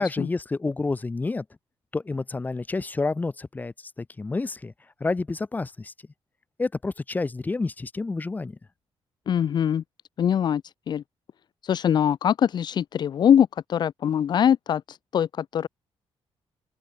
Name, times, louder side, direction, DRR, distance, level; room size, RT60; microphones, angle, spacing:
voice 1, 0.0-1.4 1.9-4.7 5.0-5.9 6.6-8.6, left 3 dB, 15° left, 4.6 m, -29 dB
voice 2, 9.3-9.8 10.2-11.0 11.6-15.7, left 9 dB, 45° left, 0.9 m, -23 dB
wide cardioid pair, 175°, 10 cm